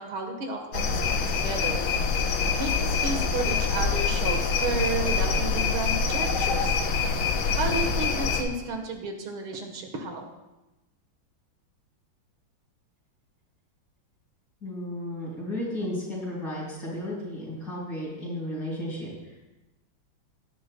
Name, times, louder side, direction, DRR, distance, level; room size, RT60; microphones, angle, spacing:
voice 1, 0.0-1.9 2.6-6.8 7.5-10.3, right 3 dB, 85° right, 3 dB, 2.3 m, -32 dB
sound 1, 0.7-8.4, left 5 dB, 80° left, 1.8 m, -25 dB
voice 2, 14.6-19.4, left 1 dB, 50° left, -5 dB, 5.4 m, -34 dB
18.5 x 11.0 x 2.3 m, 1.0 s
omnidirectional pair, 2.2 m